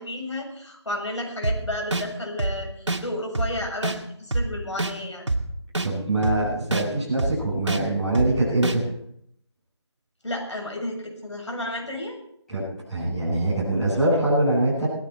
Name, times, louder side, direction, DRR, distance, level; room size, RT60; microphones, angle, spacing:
voice 1, 0.0-5.2 10.2-12.2, left 1 dB, 85° left, 1 dB, 7.7 m, -32 dB
sound 1, 1.4-1.6 1.9-2.0 2.4-2.5 2.9-3.0 3.4-3.5 3.8-4.0 4.3-4.4 4.8-4.9 5.3-5.4 5.8-5.9 6.2-6.4 6.7-6.8 7.2-7.3 7.7-7.8 8.2-8.3 8.6-8.8, right 2 dB, 85° right, 2.3 m, -24 dB
voice 2, 5.8-8.8 12.5-12.6 12.9-14.9, right 2 dB, 5° left, -14 dB, 7.7 m, -23 dB
19.5 x 14.5 x 4.5 m, 0.74 s
figure-of-eight pair, 175°, 15 cm